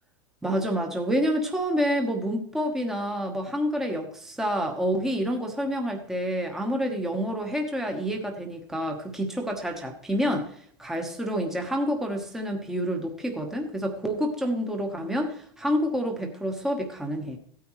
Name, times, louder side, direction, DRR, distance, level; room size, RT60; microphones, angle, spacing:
voice 1, 0.4-17.4, equal, 5° right, 2 dB, 1.2 m, -28 dB
16.0 x 9.4 x 3.1 m, 0.62 s
supercardioid pair, 145°, 12 cm